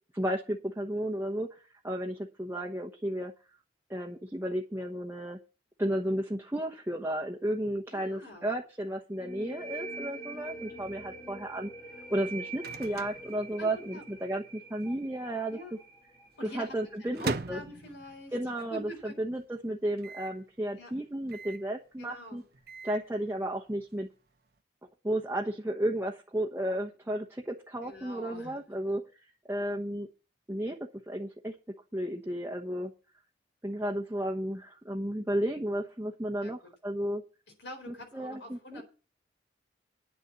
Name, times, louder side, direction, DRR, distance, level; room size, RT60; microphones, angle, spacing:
voice 1, 0.1-1.6 1.8-3.3 3.9-5.4 5.8-11.7 12.1-15.6 16.5-17.6 18.3-22.4 22.8-24.1 25.0-29.0 29.5-30.1 30.5-30.8 31.1-31.6 31.9-32.9 33.6-37.2 37.9-38.8, right 1 dB, 10° right, 0 dB, 1.0 m, -33 dB
voice 2, 7.9-8.5 13.6-14.0 15.5-15.7 16.4-16.7 17.0-18.3 18.7-19.2 20.8-20.9 22.0-22.4 27.8-28.6 36.4-36.5 37.6-38.8, equal, 70° left, 4 dB, 4.1 m, -45 dB
sound 1, 9.2-16.6, right 3 dB, 20° left, 3.0 m, -44 dB
Microwave oven, 12.0-14.2 14.5-14.6 14.8-15.3 15.8-18.5 19.0-19.1 19.2-19.3 20.0-20.4 21.3-21.7 22.4-23.0, right 3 dB, 55° right, 0.8 m, -40 dB
10.0 x 6.8 x 8.1 m, 0.34 s
head